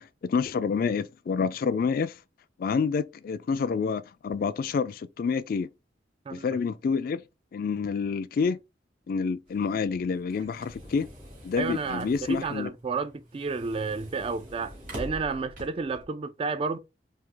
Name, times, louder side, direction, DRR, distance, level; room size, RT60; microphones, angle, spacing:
voice 1, 0.0-2.2 2.6-5.7 6.3-7.2 7.5-8.6 9.1-11.1 11.4-12.7, left 5 dB, 50° left, 0.3 m, -28 dB
sound 1, 9.5-16.0, equal, 50° right, 2.2 m, -45 dB
voice 2, 11.6-16.8, right 4 dB, 30° right, 0.3 m, -31 dB
4.6 x 2.8 x 3.7 m
head